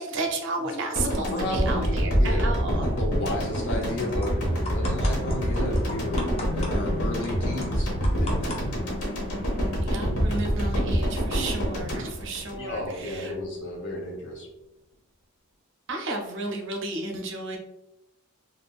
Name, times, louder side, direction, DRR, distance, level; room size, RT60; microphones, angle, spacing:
voice 1, 0.0-2.8 9.8-13.3 15.9-17.6, right 2 dB, 55° right, 2 dB, 0.5 m, -32 dB
sound 1, 1.0-13.2, equal, 75° left, 0.9 m, -26 dB
voice 2, 1.0-7.9 8.2-8.8 12.6-14.5, left 1 dB, 55° left, 0 dB, 0.8 m, -33 dB
sound 2, 3.2-9.7, left 2 dB, 25° left, 0.5 m, -41 dB
3.5 x 2.2 x 2.3 m, 0.86 s
head